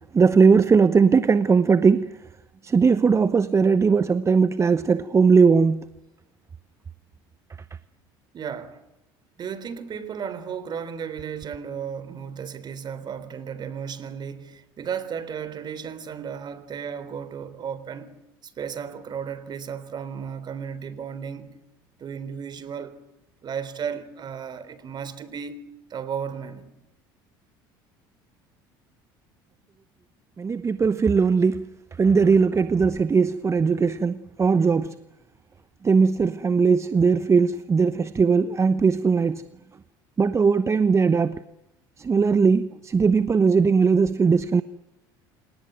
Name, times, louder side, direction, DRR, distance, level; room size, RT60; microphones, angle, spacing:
voice 1, 0.1-2.1 2.6-5.8 30.4-31.7 32.0-34.9 35.8-39.4 40.2-41.4 42.0-44.6, right 5 dB, 25° right, 1.0 m, -19 dB
voice 2, 8.3-8.8 9.4-18.1 18.4-21.5 22.0-23.0 23.4-26.7, right 7 dB, 40° right, 3.7 m, -34 dB
27.5 x 19.0 x 9.3 m
hypercardioid pair, 80°, 11 cm